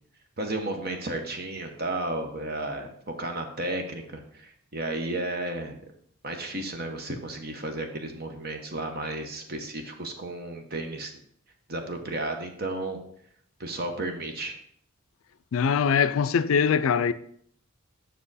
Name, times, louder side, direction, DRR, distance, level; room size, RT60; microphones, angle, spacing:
voice 1, 0.4-5.8 6.2-11.1 11.7-13.0 13.6-14.6, right 2 dB, 45° right, 1.1 m, -33 dB
voice 2, 15.5-17.1, left 6 dB, 75° left, 0.4 m, -22 dB
7.6 x 6.1 x 4.1 m
head